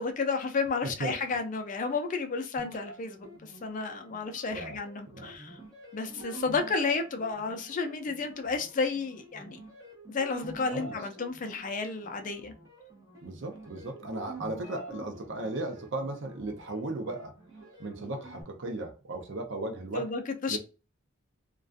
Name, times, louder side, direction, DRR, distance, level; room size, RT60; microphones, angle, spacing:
voice 1, 0.0-5.6 5.9-9.6 10.1-12.5 19.9-20.6, left 4 dB, 40° left, 0.3 m, -32 dB
voice 2, 0.8-1.1 4.5-4.8 5.1-5.3 10.7-11.0 13.2-17.4 17.8-20.1 20.5-20.6, right 2 dB, 60° right, 0.5 m, -36 dB
sound 1, 2.6-18.4, right 2 dB, 15° right, 0.8 m, -48 dB
2.4 x 2.2 x 2.4 m
head